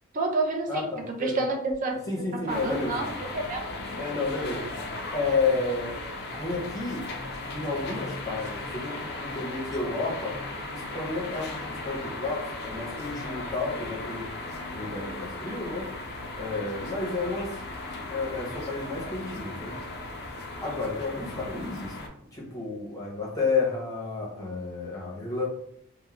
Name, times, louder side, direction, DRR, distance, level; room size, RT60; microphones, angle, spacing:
voice 1, 0.1-0.9 1.2-2.0 2.5-3.6, right 3 dB, 35° right, 1 dB, 0.4 m, -28 dB
voice 2, 0.7-1.4 2.1-3.0 4.0-4.7 5.1-6.0 6.3-7.1 7.5-10.4 10.7-14.3 14.7-15.9 16.4-19.8 20.6-22.0 22.3-25.5, left 3 dB, 15° left, -4 dB, 0.7 m, -31 dB
sound 1, 2.5-22.1, left 2 dB, 50° left, 0.3 m, -37 dB
2.3 x 2.1 x 3.0 m, 0.69 s
head